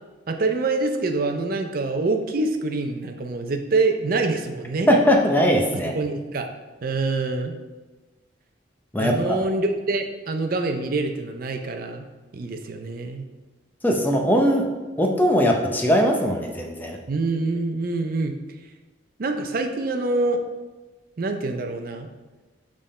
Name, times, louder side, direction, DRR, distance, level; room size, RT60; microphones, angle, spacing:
voice 1, 0.3-4.9 5.9-6.5 6.8-7.5 9.0-12.0 12.3-13.2 17.1-18.3 19.2-20.4 21.2-22.1, right 3 dB, 50° right, 5 dB, 0.5 m, -25 dB
voice 2, 4.9-5.9 8.9-9.4 13.8-14.7 15.0-17.0, equal, 10° left, 1 dB, 0.7 m, -20 dB
7.5 x 3.7 x 4.2 m, 1.2 s
head